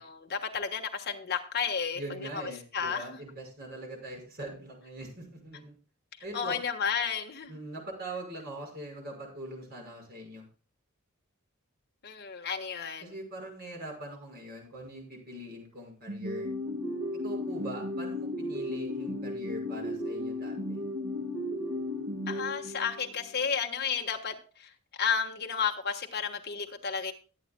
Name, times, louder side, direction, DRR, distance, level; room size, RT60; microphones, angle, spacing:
voice 1, 0.0-3.2 6.3-7.5 12.0-13.1 22.3-24.7 25.0-27.1, left 6 dB, 50° left, 3 dB, 1.3 m, -32 dB
voice 2, 1.9-5.8 6.2-6.6 7.5-10.5 13.0-16.5 17.2-20.8, right 1 dB, 50° right, 0 dB, 5.6 m, -42 dB
sound 1, 16.1-23.2, left 1 dB, 70° right, 2.5 m, -35 dB
22.5 x 8.5 x 2.2 m, 0.37 s
head